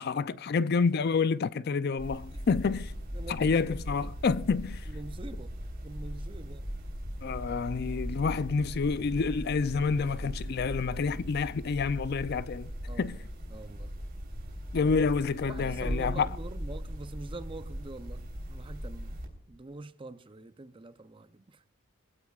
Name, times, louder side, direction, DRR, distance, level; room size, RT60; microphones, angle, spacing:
voice 1, 0.0-2.9 3.3-4.8 7.2-12.7 13.0-13.2 14.7-16.3, left 5 dB, 50° left, 0.4 m, -28 dB
sound 1, 2.0-19.3, equal, 45° right, 3.7 m, -39 dB
voice 2, 3.1-3.7 4.9-5.5 5.8-6.7 12.9-14.0 14.8-14.9 15.4-19.2 19.5-21.6, right 2 dB, 25° right, 0.5 m, -45 dB
22.0 x 15.0 x 2.4 m
head